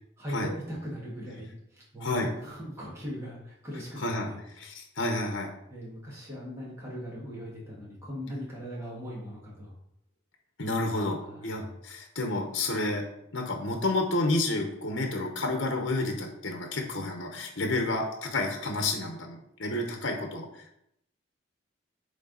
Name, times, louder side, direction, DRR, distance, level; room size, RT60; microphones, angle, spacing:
voice 1, 0.2-4.4 5.7-9.7 11.2-11.7, equal, 15° right, -6 dB, 1.5 m, -40 dB
voice 2, 4.0-4.3 4.5-5.5 10.6-13.0 13.3-20.7, left 2 dB, 65° left, 3 dB, 1.0 m, -30 dB
8.3 x 3.4 x 3.9 m, 0.77 s
head